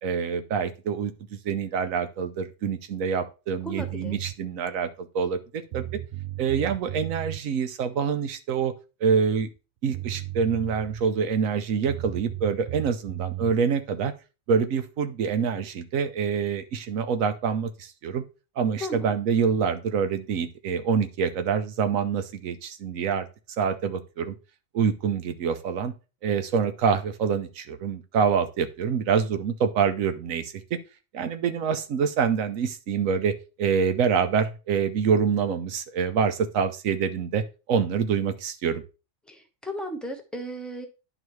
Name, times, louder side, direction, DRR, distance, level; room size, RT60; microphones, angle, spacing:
voice 1, 0.0-5.9 6.4-8.7 9.0-9.5 9.8-14.1 14.5-18.2 18.6-23.3 23.6-24.3 24.7-25.9 26.2-30.5 31.1-37.4 37.7-38.8, right 6 dB, 80° right, 9 dB, 1.2 m, -26 dB
voice 2, 3.6-4.2 18.8-19.1 39.3-40.9, equal, ahead, 4 dB, 1.0 m, -35 dB
sound 1, 3.8-4.4 5.4-5.5 5.7-7.4 9.6-9.7 9.9-11.1 11.9-13.6, right 15 dB, 65° right, 0.7 m, -35 dB
11.0 x 4.0 x 3.1 m, 0.31 s
omnidirectional pair, 1.4 m